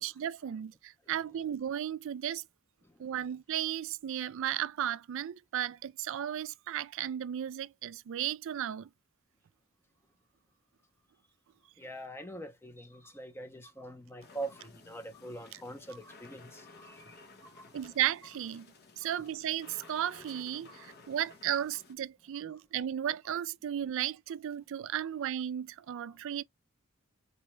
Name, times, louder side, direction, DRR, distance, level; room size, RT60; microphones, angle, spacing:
voice 1, 0.0-2.4 3.0-8.9 15.5-15.6 17.7-18.7 19.0-26.4, right 10 dB, 65° right, 0.3 m, -35 dB
voice 2, 11.8-17.7, right 2 dB, 10° left, 0.6 m, -44 dB
sound 1, 14.2-21.9, left 3 dB, 50° left, 0.9 m, -56 dB
4.1 x 2.2 x 3.0 m
head